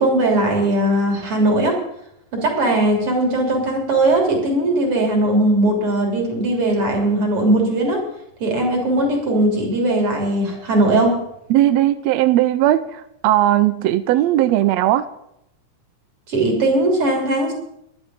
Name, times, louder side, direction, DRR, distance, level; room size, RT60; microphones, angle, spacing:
voice 1, 0.0-1.8 2.3-8.0 8.4-11.2 16.3-17.5, right 1 dB, 45° right, 1 dB, 4.1 m, -19 dB
voice 2, 11.5-15.1, right 13 dB, 80° right, 13 dB, 1.5 m, -17 dB
11.0 x 8.7 x 9.1 m, 0.78 s
omnidirectional pair, 3.6 m